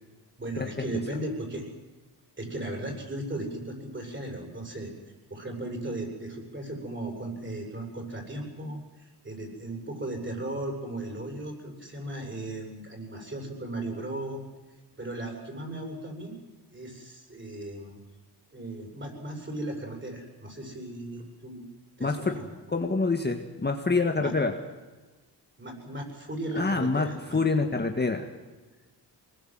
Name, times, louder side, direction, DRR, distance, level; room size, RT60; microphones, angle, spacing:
voice 1, 0.4-1.7 2.4-4.9 5.3-14.4 15.0-16.3 16.7-18.0 18.5-21.7 22.0-22.5 24.2-24.3 25.6-27.4, right 1 dB, 25° right, 2 dB, 7.8 m, -36 dB
voice 2, 22.0-22.4 22.7-24.6 26.6-28.3, left 3 dB, 25° left, 3 dB, 1.9 m, -26 dB
24.0 x 20.5 x 7.9 m, 1.2 s
cardioid pair, 85°, 42 cm